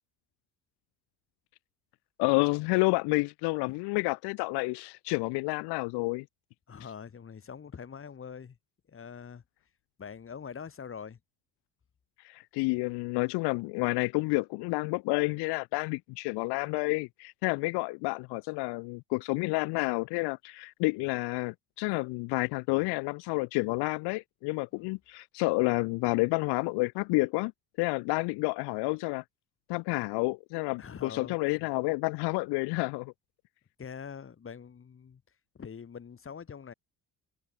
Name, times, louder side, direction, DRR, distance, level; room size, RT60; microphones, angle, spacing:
voice 1, 2.2-6.2 12.2-27.5 27.8-29.2 29.7-33.1, left 26 dB, 80° left, 0.5 m, -29 dB
voice 2, 6.7-8.6 8.9-9.4 10.0-11.2 24.7-24.9 30.8-31.7 33.8-35.2 35.5-36.7, left 7 dB, 30° left, 1.7 m, -44 dB
supercardioid pair, 85°, 39 cm